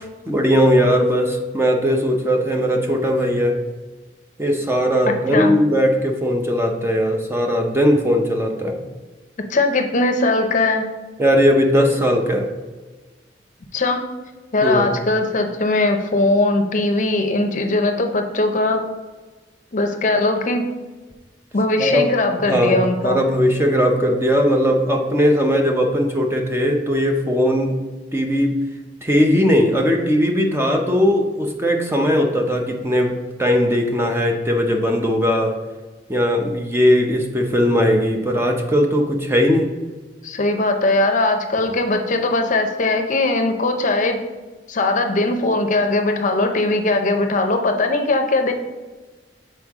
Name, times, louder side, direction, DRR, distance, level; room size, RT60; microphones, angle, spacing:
voice 1, 0.3-3.6 4.4-8.8 11.2-12.5 14.6-14.9 21.8-22.0 22.4-27.8 28.1-28.6 29.0-33.1 33.4-35.5 36.1-39.7, equal, 15° right, 2 dB, 0.7 m, -18 dB
voice 2, 9.5-10.9 13.7-14.0 14.5-18.8 19.7-20.6 21.5-23.2 40.2-44.2 44.7-48.5, left 2 dB, 45° left, 5 dB, 0.6 m, -20 dB
6.5 x 4.4 x 3.6 m, 1.3 s
head